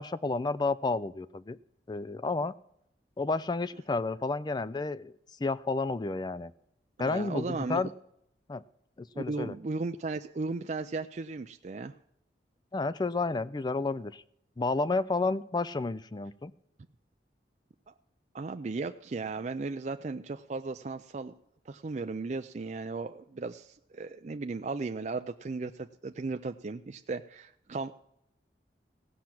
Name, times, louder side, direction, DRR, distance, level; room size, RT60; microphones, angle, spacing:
voice 1, 0.0-1.6 1.9-2.5 3.2-5.1 5.4-6.5 7.0-7.9 8.5-8.6 9.0-9.5 12.7-14.2 14.6-16.5, left 3 dB, 25° left, 15 dB, 0.4 m, -31 dB
voice 2, 7.0-7.8 9.1-11.9 17.9-18.0 18.3-21.3 21.7-27.9, right 3 dB, 40° right, 7 dB, 0.4 m, -36 dB
16.5 x 5.8 x 7.6 m, 0.76 s
head